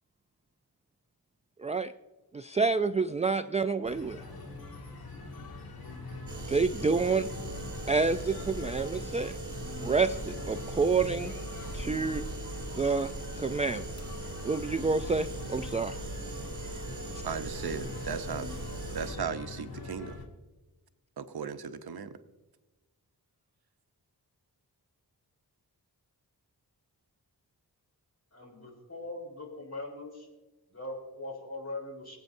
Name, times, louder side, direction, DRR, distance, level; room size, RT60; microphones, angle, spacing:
voice 1, 1.6-1.9 2.3-4.2 6.5-7.3 7.9-9.4 9.8-11.3 11.7-12.2 12.8-13.9 14.4-16.0, right 4 dB, 20° right, 11 dB, 0.3 m, -28 dB
sound 1, 3.8-20.2, left 3 dB, 70° left, 2.0 m, -44 dB
sound 2, 6.3-19.1, right 2 dB, 50° right, 4.6 m, -40 dB
voice 2, 17.2-18.6 18.9-20.2 21.2-22.2, right 6 dB, 75° right, 9 dB, 0.8 m, -37 dB
voice 3, 28.3-30.3 30.7-32.2, left 2 dB, 40° left, 1 dB, 3.6 m, -41 dB
24.0 x 8.4 x 2.6 m, 1.2 s
wide cardioid pair, 90°, 38 cm